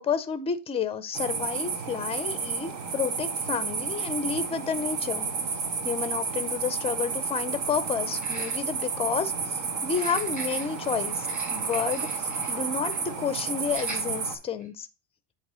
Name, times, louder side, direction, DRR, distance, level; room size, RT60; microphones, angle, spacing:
voice 1, 0.0-5.3 5.8-14.9, left 6 dB, 15° left, 0.4 m, -30 dB
sound 1, 1.1-14.4, right 5 dB, 70° right, 1.6 m, -31 dB
sound 2, 4.5-4.6 5.0-5.1 8.1-8.9 9.8-12.6 12.9-13.1 13.7-14.0 14.6-14.7, right 2 dB, 20° right, 3.1 m, -43 dB
7.9 x 3.1 x 5.3 m
cardioid pair, 140°, 46 cm